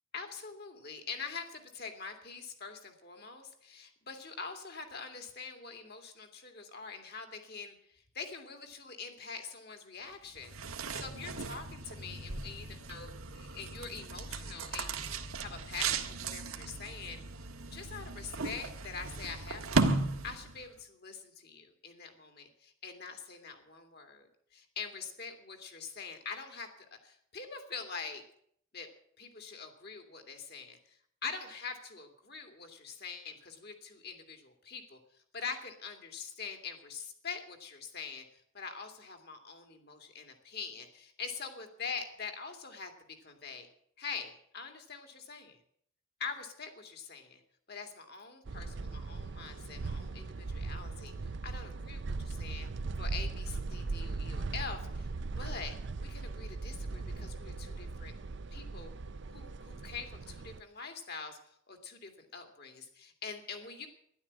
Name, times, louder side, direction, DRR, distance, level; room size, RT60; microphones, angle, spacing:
voice 1, 0.1-10.5 10.9-17.2 17.7-19.9 20.2-24.3 24.5-28.2 28.7-28.9 29.2-31.0 31.2-35.0 35.3-43.7 44.0-45.6 46.2-47.4 47.7-52.7 53.0-55.1 55.4-58.2 58.5-58.9 59.3-63.9, left 5 dB, 50° left, 5 dB, 2.3 m, -44 dB
sound 1, 10.4-20.7, right 3 dB, 90° right, 1.5 m, -36 dB
sound 2, 48.4-60.6, right 3 dB, 55° right, 0.5 m, -39 dB
12.5 x 11.0 x 8.6 m, 0.66 s
head